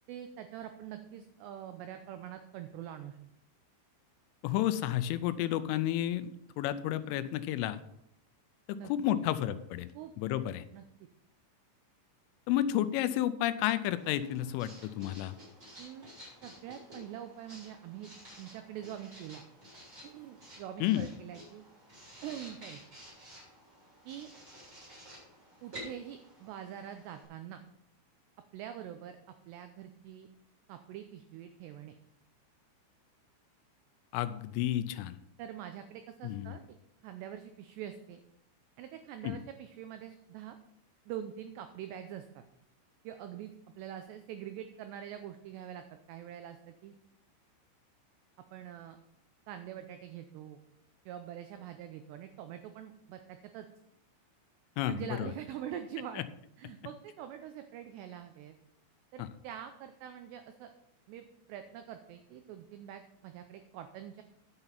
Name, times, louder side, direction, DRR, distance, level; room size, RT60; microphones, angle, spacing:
voice 1, 0.1-3.2 8.7-9.2 9.9-10.4 10.7-11.1 15.8-16.1 16.4-18.1 18.4-19.4 20.0-21.6 22.2-22.8 24.1-24.3 25.6-27.6 28.5-30.3 30.7-31.9 35.4-36.8 37.0-38.2 38.8-40.6 41.1-42.4 43.0-47.0 48.5-49.0 49.5-50.6 51.1-53.7 54.9-56.2 56.6-58.6 59.1-60.7 61.1-64.2, right 10 dB, 85° right, 8 dB, 2.4 m, -44 dB
voice 2, 4.4-7.8 8.9-9.9 10.2-10.6 12.5-15.4 20.8-21.1 34.1-35.2 36.2-36.6 39.2-39.4 54.8-55.3 59.2-59.3, left 12 dB, 85° left, 13 dB, 3.1 m, -31 dB
Writing, 14.0-27.2, equal, 15° right, 4.4 m, -52 dB
10.5 x 6.8 x 5.7 m, 0.77 s
omnidirectional pair, 5.7 m